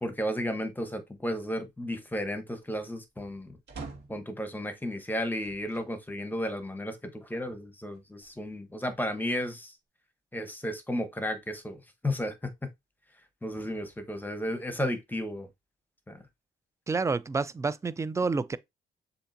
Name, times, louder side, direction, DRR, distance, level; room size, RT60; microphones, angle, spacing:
voice 1, 0.0-3.6 4.1-9.7 10.3-12.7 13.4-15.5 16.1-16.2, equal, 10° left, 1.0 m, -33 dB
sound 1, 3.7-4.3 5.4-5.9 6.6-6.7 7.9-8.7, right 4 dB, 60° right, 1.9 m, -45 dB
voice 2, 16.9-18.6, right 4 dB, 15° right, 0.3 m, -29 dB
6.9 x 2.7 x 2.6 m
cardioid pair, 90°, 20 cm